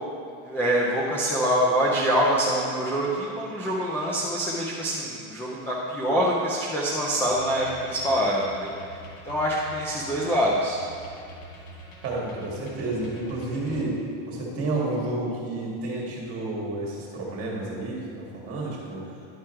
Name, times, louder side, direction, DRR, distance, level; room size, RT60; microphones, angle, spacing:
voice 1, 0.4-9.0 9.2-10.8, equal, 5° left, -5 dB, 0.4 m, -25 dB
sound 1, 7.2-13.8, equal, 90° left, 1.7 m, -45 dB
voice 2, 12.0-14.0 14.2-19.1, right 2 dB, 35° right, -3 dB, 1.8 m, -30 dB
10.5 x 4.8 x 4.4 m, 2.6 s
cardioid pair, 165°, 41 cm